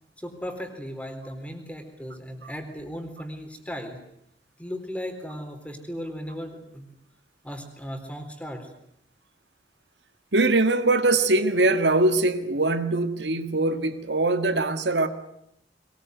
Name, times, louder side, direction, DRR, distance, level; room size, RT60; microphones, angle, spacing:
voice 1, 0.2-4.0 4.6-6.9 7.4-8.7, equal, 10° left, 4.0 m, -36 dB
voice 2, 10.3-15.1, right 2 dB, 90° right, 1.8 m, -22 dB
22.0 x 20.5 x 9.4 m
head